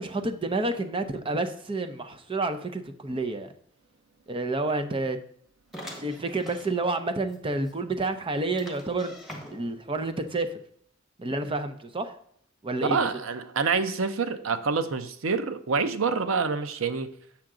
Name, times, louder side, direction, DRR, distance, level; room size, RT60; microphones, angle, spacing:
voice 1, 0.0-3.5 4.3-5.2 6.0-9.1 9.5-10.6 11.2-12.2 12.6-13.1, right 2 dB, 25° right, 8 dB, 0.6 m, -29 dB
sound 1, 5.7-6.7 7.3-7.4 7.6-7.7 8.6-9.8, equal, ahead, 1.4 m, -43 dB
voice 2, 12.8-17.1, right 5 dB, 90° right, 10 dB, 0.6 m, -27 dB
7.5 x 5.8 x 3.7 m, 0.65 s
head